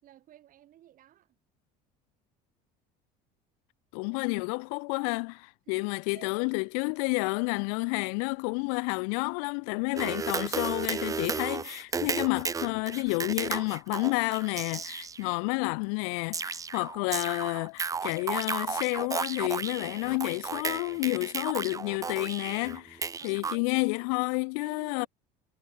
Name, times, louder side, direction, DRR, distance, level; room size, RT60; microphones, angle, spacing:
voice 1, 0.0-1.4 5.7-6.3 15.2-15.8 23.2-24.1 24.6-25.1, right 12 dB, 50° right, 5.5 m, -54 dB
voice 2, 3.9-25.1, left 40 dB or more, 80° left, 0.8 m, -30 dB
sound 1, 10.0-15.3 16.3-23.6, right 5 dB, 20° right, 0.7 m, -34 dB
supercardioid pair, 115°, 18 cm